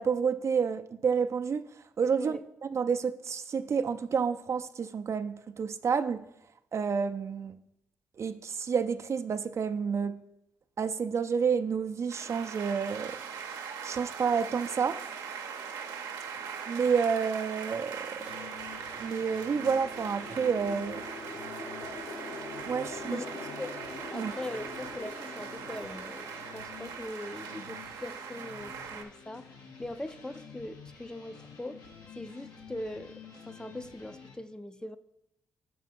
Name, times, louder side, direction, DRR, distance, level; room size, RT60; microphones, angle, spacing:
voice 1, 0.0-1.7 2.0-2.4 2.7-6.2 6.7-7.6 8.2-10.2 10.8-13.2 13.8-15.0 16.7-18.2 19.0-21.0 22.6-23.2 24.1-24.3, right 6 dB, 50° right, 0.4 m, -29 dB
sound 1, 12.1-29.0, right 7 dB, 80° right, 0.7 m, -41 dB
sound 2, 17.9-28.4, left 3 dB, 55° left, 1.2 m, -45 dB
sound 3, 18.2-34.4, left 6 dB, 80° left, 1.1 m, -50 dB
voice 2, 24.1-29.5 29.8-31.8 32.1-35.0, left 1 dB, 10° left, 0.4 m, -41 dB
5.5 x 4.6 x 6.0 m
supercardioid pair, 50°, 6 cm